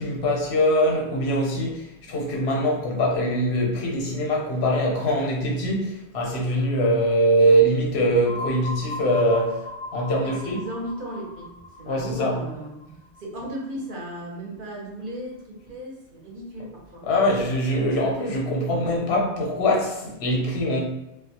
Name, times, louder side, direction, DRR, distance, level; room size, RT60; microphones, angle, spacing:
voice 1, 0.0-9.6 9.9-10.6 11.9-12.4 17.0-20.8, equal, 80° left, 1.0 m, -23 dB
sound 1, 8.2-13.9, left 1 dB, 55° left, 0.6 m, -38 dB
voice 2, 10.2-11.5 11.8-17.1, right 1 dB, 55° right, 0.9 m, -36 dB
2.3 x 2.1 x 2.8 m
omnidirectional pair, 1.1 m